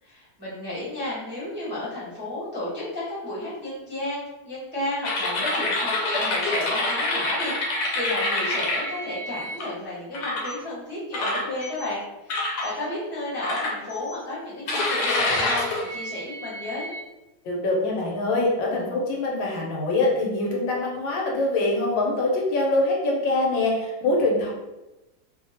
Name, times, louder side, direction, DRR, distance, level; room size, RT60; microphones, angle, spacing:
voice 1, 0.0-16.9, left 1 dB, 10° right, -10 dB, 0.6 m, -33 dB
sound 1, 5.0-9.6 10.1-10.5 11.1-11.9 12.3-12.7 13.4-14.1 14.7-17.0, left 2 dB, 65° left, 1.1 m, -27 dB
voice 2, 17.4-24.5, left 2 dB, 85° left, -1 dB, 1.4 m, -24 dB
2.7 x 2.7 x 2.6 m, 1.0 s
omnidirectional pair, 2.0 m